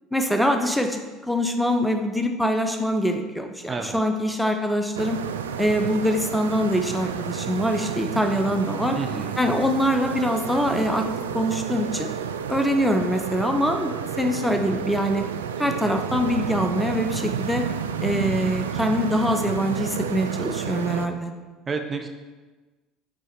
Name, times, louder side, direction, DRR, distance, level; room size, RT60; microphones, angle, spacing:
voice 1, 0.1-5.2 5.6-9.0 9.4-11.1 11.3-12.1 12.5-15.2 15.6-17.6 18.0-21.3, equal, ahead, 4 dB, 0.8 m, -24 dB
voice 2, 3.7-4.0 9.0-9.4 21.7-22.1, right 4 dB, 30° right, 4 dB, 0.8 m, -30 dB
sound 1, 4.9-21.1, right 8 dB, 80° right, 0.4 m, -31 dB
9.1 x 3.8 x 5.2 m, 1.3 s
figure-of-eight pair, 65°, 0 cm